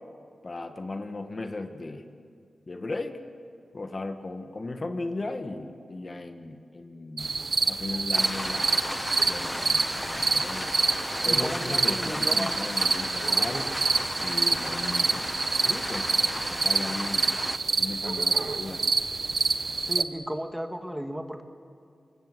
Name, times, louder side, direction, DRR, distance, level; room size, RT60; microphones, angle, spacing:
voice 1, 0.4-2.1 2.7-3.2 3.7-7.3 7.7-8.7 9.3-10.7 11.2-13.7 14.2-15.3 15.6-16.1 16.5-17.3 17.8-18.8, left 2 dB, 40° left, 7 dB, 1.6 m, -36 dB
sound 1, 7.2-20.0, right 4 dB, 55° right, 1.1 m, -27 dB
sound 2, 8.1-17.6, left 1 dB, 15° left, 0.8 m, -34 dB
voice 2, 11.2-12.5 19.8-21.4, equal, 5° right, 5 dB, 1.8 m, -34 dB
26.0 x 21.5 x 7.9 m, 2.3 s
cardioid pair, 70°, 0 cm